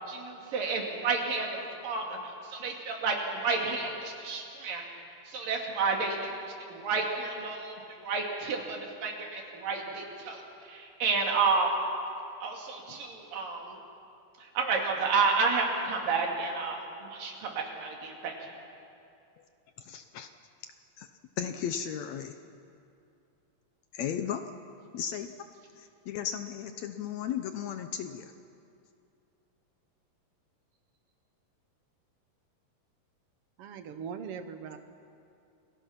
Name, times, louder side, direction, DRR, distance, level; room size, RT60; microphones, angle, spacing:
voice 1, 0.0-4.8 5.3-6.3 6.7-10.4 10.7-11.7 12.4-13.8 14.6-18.3, right 4 dB, 90° right, 0 dB, 4.3 m, -31 dB
voice 2, 19.8-20.3 21.0-21.1 21.4-22.3 23.9-24.4 24.9-25.3 25.8-28.3, left 9 dB, 70° left, 8 dB, 1.8 m, -35 dB
voice 3, 33.6-34.8, right 7 dB, 65° right, 8 dB, 1.5 m, -40 dB
29.0 x 20.0 x 5.9 m, 2.6 s
omnidirectional pair, 3.8 m